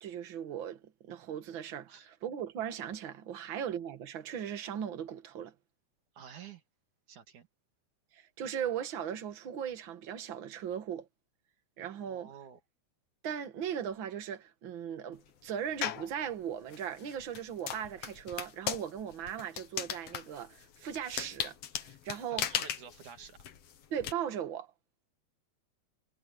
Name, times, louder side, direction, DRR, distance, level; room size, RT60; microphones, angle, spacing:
voice 1, 0.0-1.9 2.2-5.5 8.1-11.1 11.8-12.3 13.2-22.5 23.9-24.7, right 9 dB, 45° right, 2.1 m, -38 dB
voice 2, 6.2-6.6 7.1-7.5 12.1-12.6 22.3-23.4, right 8 dB, 75° right, 3.7 m, -50 dB
sound 1, 15.8-16.1 16.7-24.1, left 9 dB, 60° left, 2.3 m, -37 dB
omnidirectional pair, 3.5 m